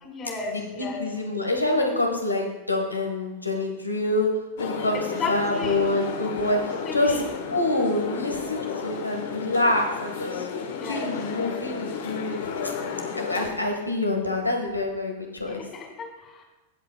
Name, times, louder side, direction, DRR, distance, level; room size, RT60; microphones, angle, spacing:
voice 1, 0.0-1.0 4.9-5.8 6.9-7.2 8.8-9.0 10.7-11.1 12.3-12.4 13.1-13.5 15.5-16.4, left 4 dB, 25° left, 2 dB, 2.3 m, -34 dB
voice 2, 0.5-4.3 4.6-5.0 5.3-7.2 7.5-10.5 10.9-12.7 13.1-15.7, left 2 dB, 85° left, 2 dB, 1.6 m, -26 dB
sound 1, 4.6-13.5, left 6 dB, 60° left, 1.2 m, -33 dB
17.0 x 7.6 x 2.3 m, 1.1 s
figure-of-eight pair, 90°, 0 cm